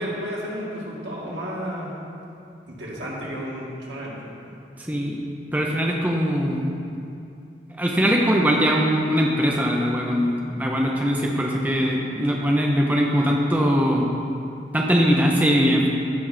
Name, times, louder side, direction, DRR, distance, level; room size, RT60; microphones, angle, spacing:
voice 1, 0.0-1.9 2.7-4.5, equal, 85° right, -4 dB, 1.9 m, -33 dB
voice 2, 4.8-5.2 5.5-6.7 7.8-14.1 14.7-15.9, equal, 10° right, -1 dB, 0.6 m, -21 dB
15.0 x 5.6 x 3.3 m, 2.6 s
head